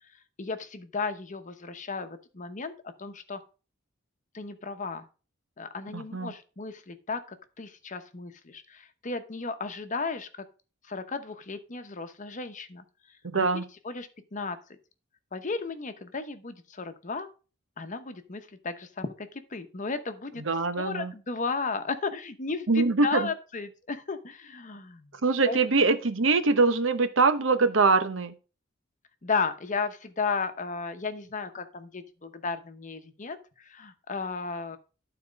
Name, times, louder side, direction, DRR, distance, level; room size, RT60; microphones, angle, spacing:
voice 1, 0.4-3.4 4.3-5.1 5.6-10.4 10.9-12.8 13.3-14.6 15.3-17.3 17.8-20.4 20.8-25.2 25.5-25.6 29.2-34.8, left 4 dB, 40° left, 9 dB, 0.9 m, -34 dB
voice 2, 5.9-6.3 13.3-13.6 20.4-21.1 22.7-23.3 25.2-28.3, right 3 dB, 70° right, 10 dB, 0.9 m, -23 dB
12.0 x 4.3 x 5.1 m, 0.35 s
head